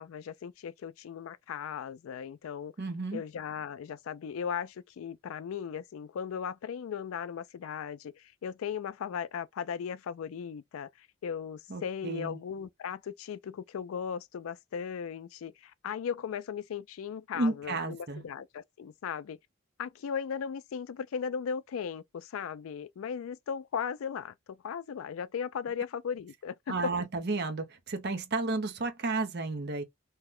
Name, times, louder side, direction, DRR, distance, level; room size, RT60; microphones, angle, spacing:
voice 1, 0.0-2.7 3.1-19.4 19.8-26.9, left 7 dB, 85° left, 0.3 m, -37 dB
voice 2, 2.8-3.2 11.7-12.4 17.3-18.2 26.7-29.8, right 3 dB, 50° right, 0.7 m, -32 dB
2.8 x 2.1 x 3.6 m
head